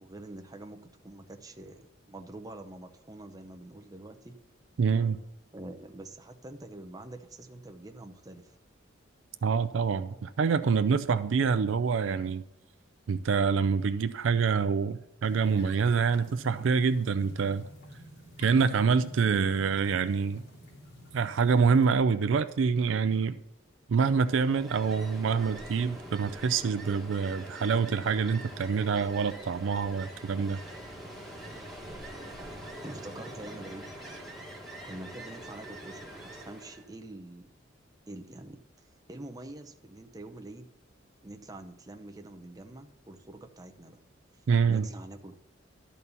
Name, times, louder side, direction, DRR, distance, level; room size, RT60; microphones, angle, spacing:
voice 1, 0.0-1.8 2.1-4.3 5.5-8.6 32.8-33.9 34.8-37.6 38.1-38.6 39.1-40.7 41.2-44.0 44.7-45.4, right 1 dB, 20° right, 4 dB, 0.7 m, -45 dB
voice 2, 4.8-5.2 9.4-12.4 13.1-17.6 18.4-20.4 21.1-23.4 23.9-30.6 44.5-44.9, right 5 dB, 70° right, 12 dB, 0.4 m, -26 dB
sound 1, 15.2-21.9, equal, 60° left, 3.1 m, -50 dB
Ocean, 24.1-36.9, right 1 dB, ahead, 1.7 m, -44 dB
12.5 x 4.2 x 7.0 m, 0.82 s
head